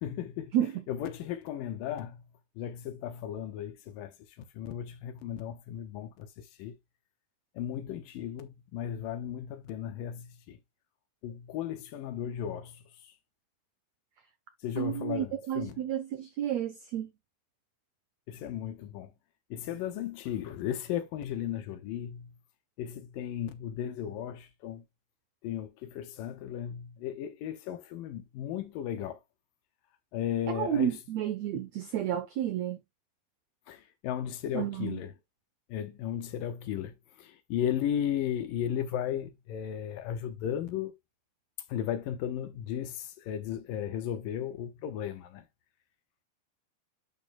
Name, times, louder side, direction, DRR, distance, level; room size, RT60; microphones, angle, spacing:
voice 1, 0.0-0.5 0.9-2.2 2.6-4.1 4.5-6.7 7.6-10.6 11.2-12.8 14.6-15.8 18.3-19.1 19.5-22.3 22.8-24.8 25.4-29.2 30.1-30.9 33.7-35.1 35.7-40.9 41.7-45.4, left 10 dB, 75° left, 2.5 m, -35 dB
voice 2, 0.5-0.8 14.8-17.1 30.5-32.8 34.5-35.0, right 11 dB, 85° right, 1.5 m, -31 dB
11.0 x 5.0 x 2.3 m
omnidirectional pair, 4.2 m